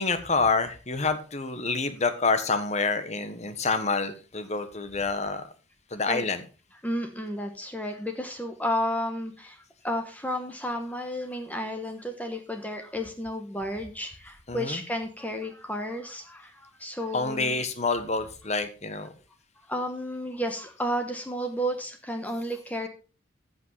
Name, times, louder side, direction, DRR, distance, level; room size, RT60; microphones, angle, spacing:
voice 1, 0.0-5.4 5.9-6.4 14.5-14.8 17.1-19.1, left 4 dB, 35° left, 10 dB, 1.3 m, -27 dB
voice 2, 6.8-17.6 19.7-22.9, equal, 10° left, 5 dB, 1.1 m, -32 dB
14.5 x 5.6 x 5.6 m, 0.36 s
head